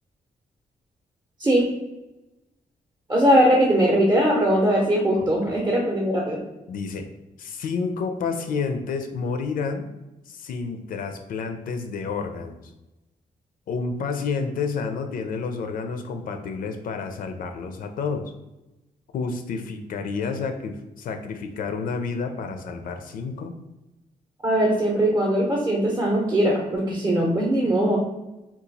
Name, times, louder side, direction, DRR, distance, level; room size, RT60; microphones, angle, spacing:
voice 1, 3.1-6.4 24.4-28.0, equal, 25° right, -2 dB, 0.6 m, -20 dB
voice 2, 6.7-7.1 7.4-9.9 10.3-12.6 13.7-18.2 19.1-23.5, left 5 dB, 75° left, 6 dB, 0.4 m, -30 dB
2.8 x 2.3 x 3.9 m, 1.0 s
wide cardioid pair, 165°, 15 cm